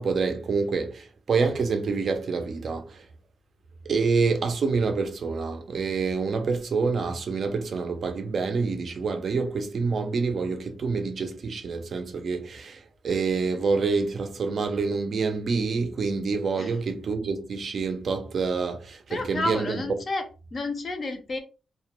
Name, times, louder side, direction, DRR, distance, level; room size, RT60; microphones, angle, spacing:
voice 1, 0.0-3.1 3.9-19.8, right 4 dB, 45° right, 0.4 m, -27 dB
voice 2, 19.1-21.4, left 2 dB, 35° left, 0.5 m, -31 dB
2.2 x 2.1 x 2.8 m
wide cardioid pair, 160°, 0 cm